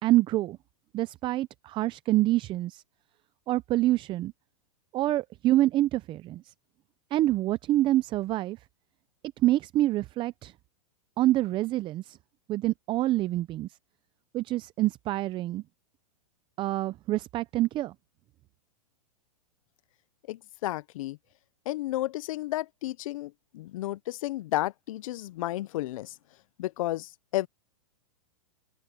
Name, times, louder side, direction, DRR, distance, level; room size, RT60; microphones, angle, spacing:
voice 1, 0.0-0.6 0.9-2.8 3.5-4.3 4.9-6.4 7.1-8.6 9.4-10.5 11.2-12.2 12.5-13.7 14.3-15.6 16.6-17.9, right 15 dB, 25° right, 0.6 m, -26 dB
voice 2, 20.3-21.2 21.7-26.2 26.6-27.5, left 16 dB, 65° left, 0.7 m, -32 dB
open air
hypercardioid pair, 130°, 19 cm